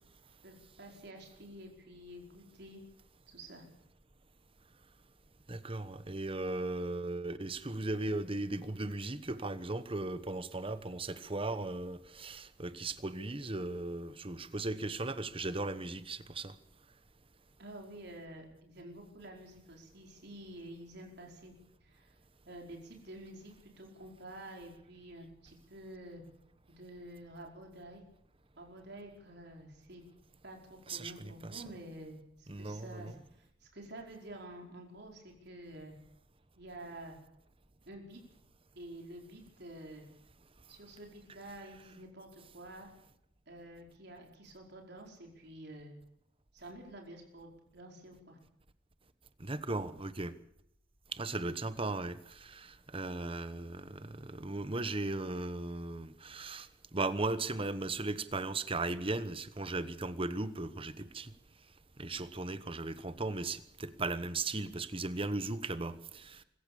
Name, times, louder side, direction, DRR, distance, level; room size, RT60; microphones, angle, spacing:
voice 1, 0.4-2.8 3.3-3.6 17.6-21.5 21.8-22.1 22.5-26.2 26.7-28.0 28.6-30.0 30.4-35.9 36.6-37.2 37.8-38.2 38.7-40.0 40.7-42.9 43.5-45.9 46.5-48.4, right 1 dB, 55° right, 1 dB, 5.1 m, -49 dB
voice 2, 5.5-16.5 30.9-31.6 32.5-33.1 49.4-50.3 51.1-61.3 62.0-66.4, right 2 dB, 30° right, 13 dB, 1.1 m, -37 dB
25.0 x 15.0 x 7.1 m, 0.78 s
head